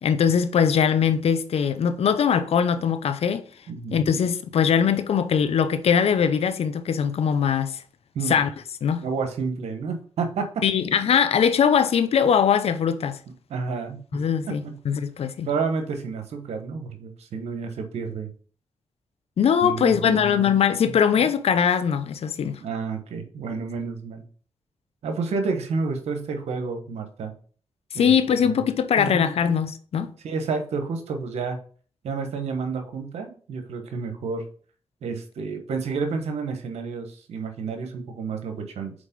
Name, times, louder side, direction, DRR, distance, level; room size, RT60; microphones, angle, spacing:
voice 1, 0.0-3.4 3.9-7.8 8.3-8.5 8.8-9.0 10.6-13.2 14.1-15.5 19.4-22.6 27.9-30.1, left 7 dB, 70° left, 0.7 m, -21 dB
voice 2, 3.7-4.0 8.1-8.4 9.0-10.5 13.5-14.2 14.6-14.8 15.5-18.3 19.6-20.5 20.9-21.0 22.6-24.2 25.0-27.3 27.9-28.1 28.4-28.6 29.0-29.3 30.2-31.6 32.0-34.5 35.0-38.9, right 4 dB, 80° right, 1.2 m, -30 dB
5.3 x 4.4 x 5.2 m
supercardioid pair, 50°, 11 cm